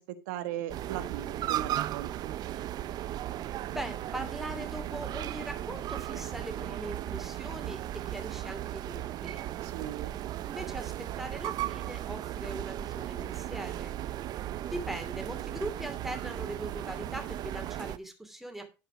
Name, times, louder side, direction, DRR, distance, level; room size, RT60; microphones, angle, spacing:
voice 1, 0.0-2.3 9.6-10.1, right 12 dB, 90° right, 10 dB, 1.3 m, -38 dB
sound 1, 0.7-18.0, right 13 dB, 50° right, 0.7 m, -36 dB
voice 2, 3.7-9.4 10.4-14.0 14.6-18.7, right 1 dB, 5° right, 5 dB, 2.7 m, -40 dB
12.0 x 4.9 x 4.9 m, 0.29 s
supercardioid pair, 110°, 9 cm